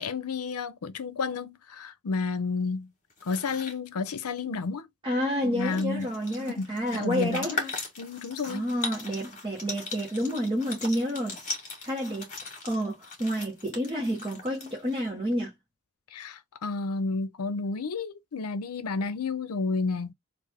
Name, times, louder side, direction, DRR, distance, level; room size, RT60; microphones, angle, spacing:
voice 1, 0.0-2.9 3.2-4.9 5.4-6.1 6.4-7.6 8.0-8.7 16.1-20.1, left 4 dB, 85° left, 0.6 m, -31 dB
sound 1, 3.1-3.8 5.2-5.3 5.5-15.1, left 4 dB, 35° left, 1.8 m, -39 dB
voice 2, 5.0-7.7 8.4-11.4 11.8-15.5, equal, 25° right, 1.2 m, -30 dB
3.4 x 2.5 x 3.5 m
head